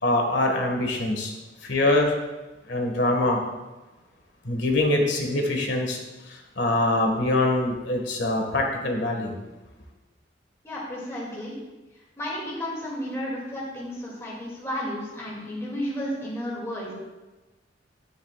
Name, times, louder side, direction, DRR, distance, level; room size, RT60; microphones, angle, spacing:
voice 1, 0.0-1.3 1.6-2.1 2.7-3.4 4.4-9.4, left 2 dB, 70° left, 1 dB, 1.8 m, -24 dB
voice 2, 10.6-11.5 12.2-16.9, equal, 15° left, -6 dB, 2.5 m, -32 dB
11.5 x 9.9 x 2.4 m, 1.1 s
head